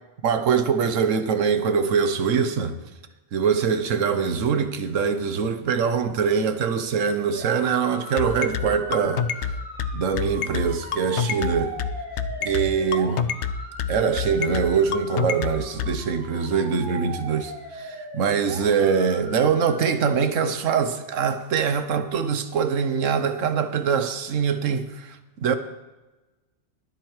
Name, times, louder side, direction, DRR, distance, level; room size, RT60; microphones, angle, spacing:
voice 1, 0.2-2.8 3.3-9.3 9.9-11.7 12.4-13.2 13.9-25.6, right 6 dB, 80° right, 1.2 m, -23 dB
sound 1, 7.3-19.8, right 1 dB, 40° right, 3.0 m, -39 dB
sound 2, 8.2-15.9, left 7 dB, 70° left, 0.9 m, -26 dB
22.5 x 7.9 x 3.2 m
omnidirectional pair, 1.3 m